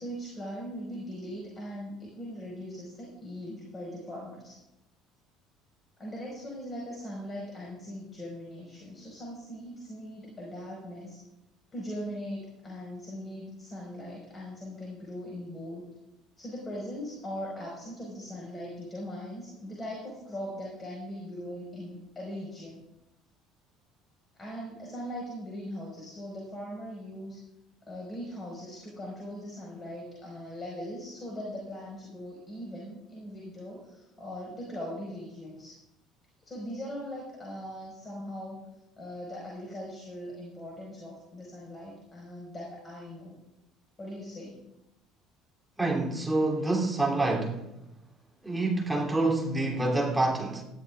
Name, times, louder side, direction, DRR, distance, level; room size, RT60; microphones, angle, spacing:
voice 1, 0.0-4.6 6.0-11.2 11.7-15.8 16.4-22.8 24.3-27.4 27.8-35.8 36.4-38.6 39.0-43.4 44.0-44.6, equal, 25° left, 5.0 m, -40 dB
voice 2, 45.8-47.6 48.4-50.6, right 2 dB, 5° right, 3.0 m, -27 dB
19.5 x 13.0 x 2.5 m
figure-of-eight pair, 60°, 0 cm